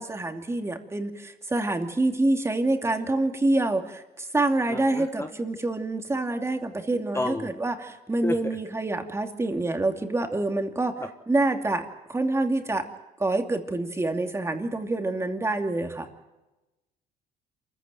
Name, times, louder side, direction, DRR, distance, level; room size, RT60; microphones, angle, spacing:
voice 1, 0.0-10.9 11.3-12.9 13.2-16.1, right 2 dB, 15° right, 5 dB, 2.7 m, -26 dB
voice 2, 4.7-5.3 7.1-7.5 8.2-8.3, left 2 dB, 15° left, 6 dB, 1.4 m, -30 dB
27.0 x 15.0 x 9.3 m, 1.0 s
cardioid pair, 110°, 17 cm